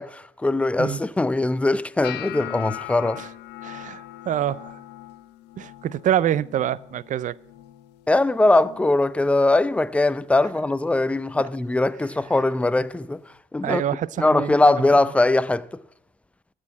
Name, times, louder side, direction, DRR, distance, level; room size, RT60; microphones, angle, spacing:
voice 1, 0.0-3.2 8.1-13.2 13.5-13.8 14.2-15.8, left 2 dB, 5° left, 0.4 m, -21 dB
sound 1, 2.0-8.1 8.4-8.9 9.3-9.8 10.4-10.6 12.4-12.5, left 15 dB, 85° left, 0.5 m, -40 dB
voice 2, 3.6-4.8 5.6-7.4 13.6-14.5, right 11 dB, 50° right, 0.5 m, -26 dB
13.5 x 6.3 x 8.6 m
cardioid pair, 110°, 17 cm